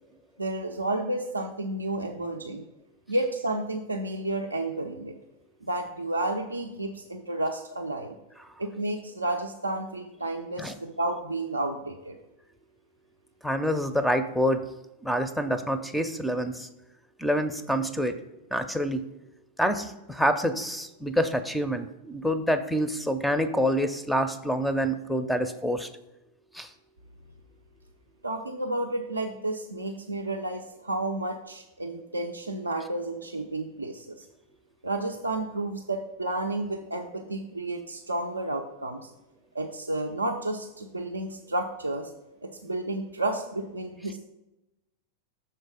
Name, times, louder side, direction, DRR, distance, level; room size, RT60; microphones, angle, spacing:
voice 1, 0.4-2.6 3.1-5.1 5.6-8.2 8.6-12.2 28.2-34.1 34.8-39.1 39.5-42.1 42.4-44.2, right 2 dB, 80° right, 2 dB, 0.4 m, -31 dB
voice 2, 13.4-14.6 15.0-16.7 17.2-18.1 18.5-19.0 19.6-25.9 26.5-26.7, equal, 5° left, 10 dB, 0.4 m, -27 dB
6.5 x 3.9 x 4.9 m, 0.99 s
figure-of-eight pair, 90°, 0 cm